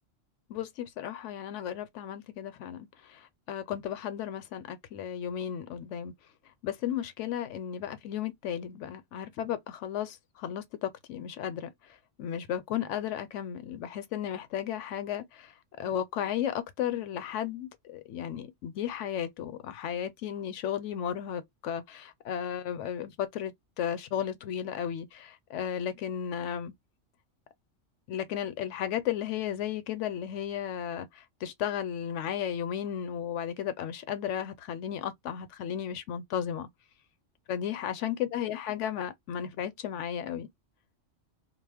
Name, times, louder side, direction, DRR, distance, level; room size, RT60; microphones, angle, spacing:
voice 1, 0.5-6.1 6.6-11.7 12.2-15.5 15.8-26.7 28.1-36.7 37.5-40.5, left 9 dB, 75° left, 0.9 m, -34 dB
2.2 x 2.0 x 3.3 m
omnidirectional pair, 1.3 m